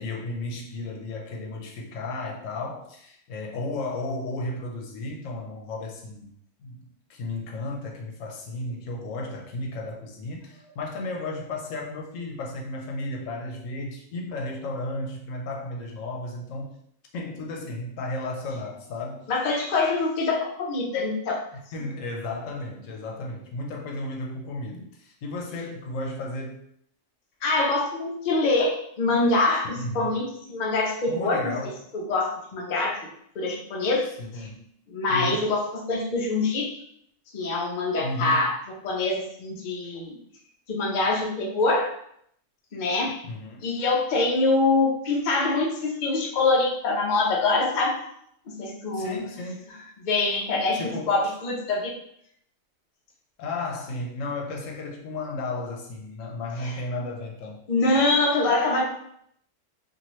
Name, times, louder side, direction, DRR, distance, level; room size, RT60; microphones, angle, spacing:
voice 1, 0.0-6.3 6.6-6.8 7.1-16.8 17.1-19.3 21.5-26.6 29.7-30.2 31.1-31.8 34.2-34.7 35.1-35.5 38.0-38.5 43.2-43.7 48.9-49.7 50.7-51.4 53.4-57.6, left 2 dB, 80° left, 0 dB, 1.0 m, -34 dB
voice 2, 19.3-21.4 27.4-31.5 32.1-33.1 33.4-34.1 34.9-36.7 37.3-38.5 38.8-40.1 40.7-41.9 42.7-43.2 43.6-48.0 48.5-49.2 50.0-51.9 56.6-56.7 57.7-58.8, left 3 dB, 45° left, -1 dB, 0.6 m, -24 dB
2.8 x 2.6 x 3.0 m, 0.71 s
omnidirectional pair, 1.3 m